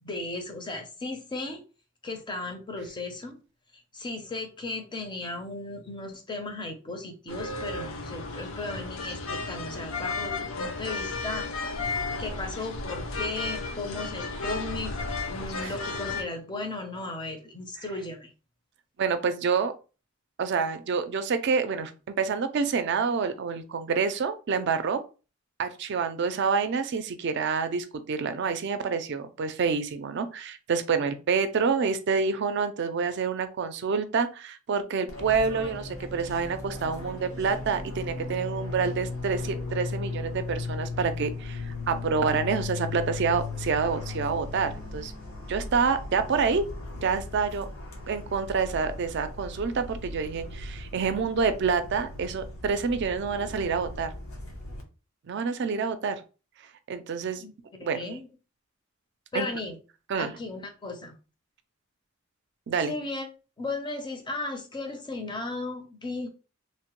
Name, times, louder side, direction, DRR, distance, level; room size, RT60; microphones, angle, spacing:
voice 1, 0.0-1.6 2.0-3.4 3.7-11.5 12.2-14.9 15.3-18.3 57.4-57.5 57.8-58.3 59.3-59.8 60.2-61.2 62.9-63.3 63.6-66.3, left 2 dB, 20° left, 0.5 m, -36 dB
sound 1, 7.3-16.2, left 3 dB, 70° left, 0.6 m, -33 dB
voice 2, 19.0-19.7 20.4-25.0 25.6-45.1 45.5-46.7 47.0-47.7 48.1-54.1 55.3-56.2 56.9-57.4 57.8-58.1 59.3-59.5 60.1-60.3 62.7-63.0, right 5 dB, 55° right, 0.4 m, -27 dB
Fixed-wing aircraft airplane, 35.1-54.8, left 3 dB, 90° left, 0.8 m, -37 dB
3.0 x 2.1 x 2.9 m
head